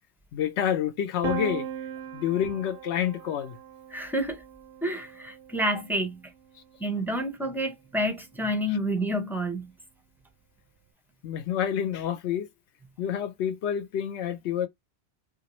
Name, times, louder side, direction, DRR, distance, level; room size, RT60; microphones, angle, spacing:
voice 1, 0.3-1.7 2.1-3.6 11.2-12.5 13.0-14.7, left 9 dB, 85° left, 0.9 m, -28 dB
Piano, 1.2-7.0, right 8 dB, 65° right, 0.7 m, -39 dB
voice 2, 3.9-4.4 4.8-6.2 6.8-9.7, equal, 5° right, 0.4 m, -29 dB
3.0 x 2.6 x 2.9 m
omnidirectional pair, 1.1 m